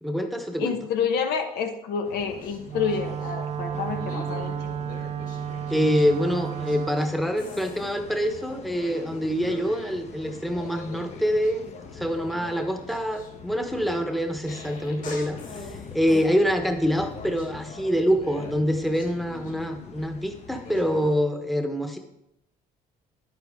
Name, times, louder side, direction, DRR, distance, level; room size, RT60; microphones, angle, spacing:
voice 1, 0.0-0.8 5.7-22.0, equal, ahead, 5 dB, 1.1 m, -26 dB
voice 2, 0.6-4.5, left 6 dB, 75° left, 5 dB, 1.2 m, -28 dB
sound 1, 2.0-21.1, left 5 dB, 40° left, 0.9 m, -45 dB
sound 2, 2.3-3.3 3.8-7.1 7.3-7.9 8.5-10.0 10.2-16.3 16.8-20.1 20.5-21.1, left 3 dB, 55° left, 3.4 m, -43 dB
Wind instrument woodwind instrument, 2.7-7.2, right 9 dB, 35° right, 0.4 m, -32 dB
9.9 x 9.2 x 3.7 m, 0.83 s
cardioid pair, 110°, 17 cm